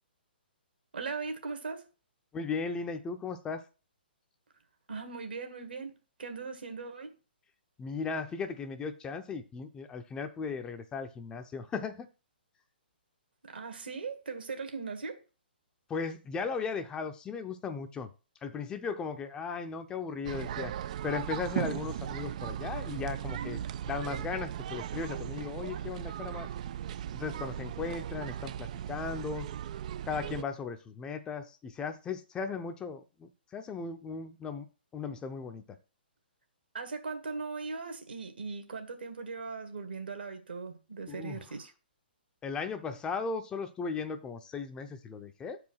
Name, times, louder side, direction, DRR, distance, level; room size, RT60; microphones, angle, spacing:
voice 1, 0.9-1.9 4.9-5.9 6.2-7.1 13.4-15.2 36.7-41.7, right 4 dB, 70° right, 1.8 m, -39 dB
voice 2, 2.3-3.6 7.8-12.1 15.9-18.1 18.4-20.7 21.0-26.5 27.1-29.5 30.0-34.7 34.9-35.6 41.1-41.4 42.4-45.6, left 5 dB, 15° left, 0.6 m, -37 dB
sound 1, 20.2-30.4, right 10 dB, 45° right, 0.4 m, -37 dB
6.8 x 4.9 x 6.1 m
figure-of-eight pair, 125°, 6 cm